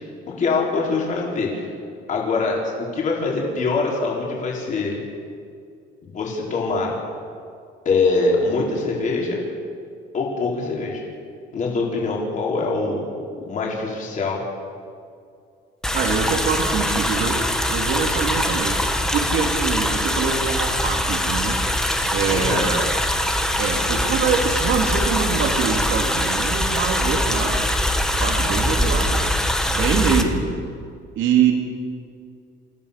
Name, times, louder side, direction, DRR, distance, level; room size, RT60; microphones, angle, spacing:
voice 1, 0.3-1.7 2.1-5.0 6.0-6.9 7.8-9.4 10.1-11.0 11.5-14.4 22.3-22.7, left 3 dB, 40° left, -3 dB, 4.6 m, -23 dB
sound 1, 15.8-30.2, equal, 5° left, 1.4 m, -22 dB
voice 2, 15.9-17.4 17.7-18.8 19.1-21.6 22.1-22.9 23.3-27.6 28.2-29.3 29.6-30.5 31.1-31.5, right 6 dB, 75° right, 1 dB, 3.4 m, -24 dB
29.0 x 15.5 x 7.0 m, 2.3 s
cardioid pair, 175°, 20 cm